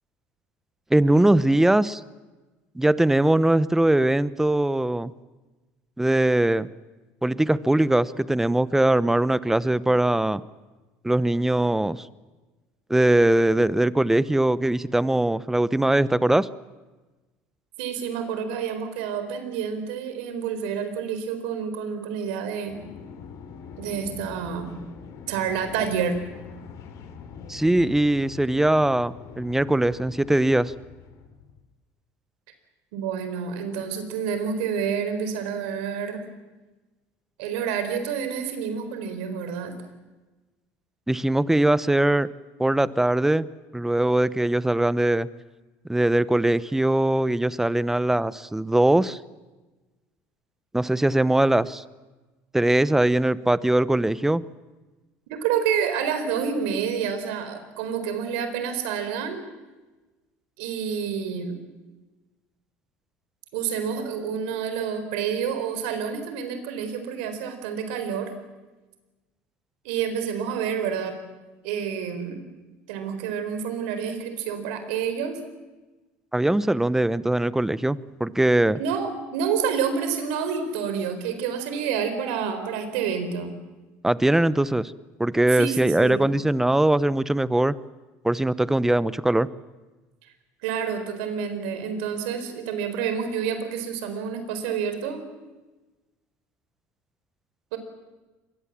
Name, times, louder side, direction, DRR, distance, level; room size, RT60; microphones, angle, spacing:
voice 1, 0.9-2.0 2.7-5.1 6.0-6.7 7.2-10.4 11.0-12.1 12.9-16.5 27.5-30.7 41.1-42.3 42.6-43.5 43.7-45.3 45.9-49.2 50.7-51.8 52.5-54.4 76.3-78.8 84.0-84.9 85.2-87.7 88.2-89.5, right 1 dB, 5° right, 17 dB, 0.8 m, -21 dB
voice 2, 17.8-22.8 23.8-24.7 25.3-26.2 32.9-36.3 37.4-39.8 55.3-59.4 60.6-61.6 63.5-68.3 69.8-71.2 71.6-72.4 72.9-75.4 78.7-83.6 85.5-86.4 90.6-95.2 97.7-97.8, right 7 dB, 85° right, 8 dB, 4.3 m, -28 dB
sound 1, 22.6-31.6, left 6 dB, 65° left, 3.4 m, -44 dB
25.0 x 21.0 x 7.5 m, 1.2 s
supercardioid pair, 105°, 6 cm